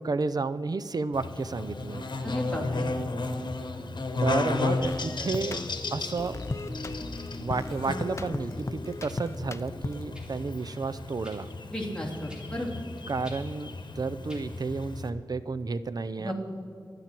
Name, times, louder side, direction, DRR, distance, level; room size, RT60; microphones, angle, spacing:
voice 1, 0.0-2.1 4.2-5.6 5.9-6.4 7.4-11.5 13.1-16.3, right 4 dB, 55° right, 14 dB, 0.5 m, -31 dB
Buzz, 1.1-15.1, left 3 dB, 70° left, 1.2 m, -34 dB
voice 2, 2.2-2.9 11.7-12.8 16.2-16.3, equal, 10° left, -2 dB, 3.1 m, -33 dB
sound 1, 4.8-10.2, left 2 dB, 35° left, 0.6 m, -37 dB
sound 2, 9.0-9.2 10.1-10.3 11.2-11.4 12.3-12.5 13.2-13.4 14.3-14.5 15.4-15.5, equal, 10° right, 2.8 m, -48 dB
24.0 x 9.8 x 4.5 m, 2.2 s
wide cardioid pair, 95°, 8 cm